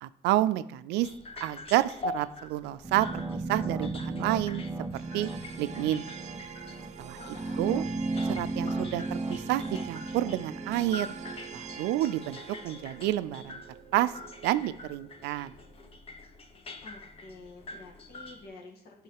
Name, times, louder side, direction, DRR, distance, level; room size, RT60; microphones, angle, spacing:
voice 1, 0.0-1.1 1.4-3.1 3.5-4.6 4.9-5.3 5.6-6.0 7.0-7.2 7.6-7.8 8.3-11.1 11.5-13.6 13.9-14.1 14.4-15.5, right 15 dB, 90° right, 14 dB, 0.4 m, -29 dB
sound 1, 1.0-18.5, left 3 dB, 35° left, 0.9 m, -45 dB
sound 2, 2.8-11.8, right 3 dB, 10° right, 0.5 m, -35 dB
sound 3, 4.9-16.0, right 8 dB, 40° right, 0.7 m, -47 dB
voice 2, 7.1-7.9 16.8-19.0, left 3 dB, 70° left, 0 dB, 2.0 m, -49 dB
10.0 x 3.8 x 4.8 m, 0.71 s
cardioid pair, 110°, 17 cm